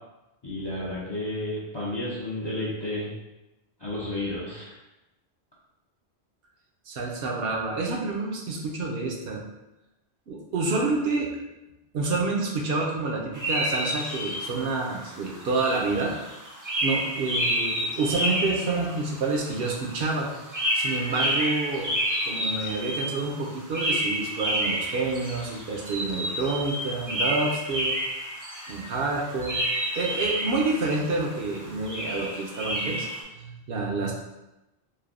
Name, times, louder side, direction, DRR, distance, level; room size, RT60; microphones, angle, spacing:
voice 1, 0.4-3.1 3.8-4.7, left 1 dB, 35° left, -7 dB, 0.4 m, -32 dB
voice 2, 6.9-9.4 10.3-11.3 11.9-16.1 16.8-20.3 20.7-21.9 22.2-27.9 28.7-29.6 30.0-33.1 33.4-34.1, right 3 dB, 65° right, -1 dB, 0.7 m, -28 dB
sound 1, 13.3-33.2, equal, 30° right, 0.3 m, -30 dB
3.3 x 2.6 x 2.5 m, 0.96 s
omnidirectional pair, 1.1 m